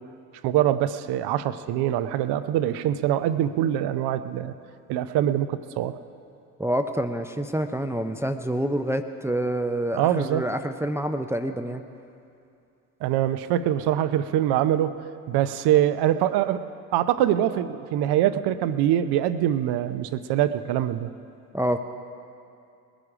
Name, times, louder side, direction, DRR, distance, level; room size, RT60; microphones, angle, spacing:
voice 1, 0.4-4.5 4.9-6.0 9.9-10.4 13.0-15.0 15.3-16.6 16.9-21.1, right 11 dB, 60° right, 12 dB, 0.8 m, -24 dB
voice 2, 6.6-11.8 21.5-21.8, right 1 dB, 5° right, 6 dB, 0.7 m, -27 dB
20.5 x 10.0 x 4.9 m, 2.6 s
hypercardioid pair, 55°, 44 cm